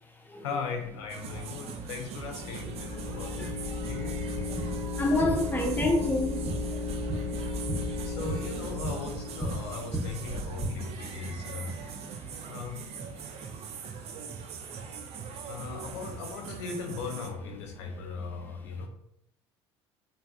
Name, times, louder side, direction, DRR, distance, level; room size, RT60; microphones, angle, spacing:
voice 1, 0.4-3.6 3.8-4.1 8.0-11.8 12.3-12.9 15.5-18.9, left 5 dB, 70° left, 0.4 m, -38 dB
sound 1, 1.1-17.3, right 7 dB, 45° right, 0.4 m, -41 dB
sound 2, 2.2-9.9, left 3 dB, 40° left, 1.3 m, -35 dB
voice 2, 2.9-4.2 5.0-6.4 10.5-12.1 14.6-14.8 17.8-17.9 18.3-18.4, left 1 dB, 15° left, 0.6 m, -32 dB
sound 3, 4.1-10.7, right 1 dB, 15° right, 0.9 m, -37 dB
3.4 x 2.3 x 2.3 m
figure-of-eight pair, 60°, 15 cm